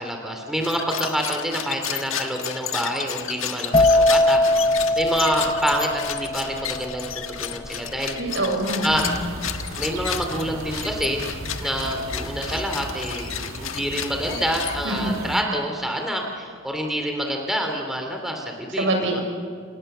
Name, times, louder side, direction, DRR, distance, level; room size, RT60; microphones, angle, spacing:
voice 1, 0.0-8.2 8.8-9.0 9.8-18.9 19.1-19.2, equal, ahead, 2 dB, 2.8 m, -27 dB
sound 1, 0.5-15.2, left 10 dB, 80° left, 1.6 m, -33 dB
sound 2, 3.7-11.3 11.6-12.1, left 1 dB, 25° left, 0.8 m, -22 dB
voice 2, 8.2-9.3 14.8-15.4 18.8-19.2, right 1 dB, 65° right, 3 dB, 6.8 m, -25 dB
sound 3, 8.9-15.4, right 2 dB, 90° right, 2.1 m, -36 dB
29.0 x 28.0 x 6.8 m, 2.2 s
head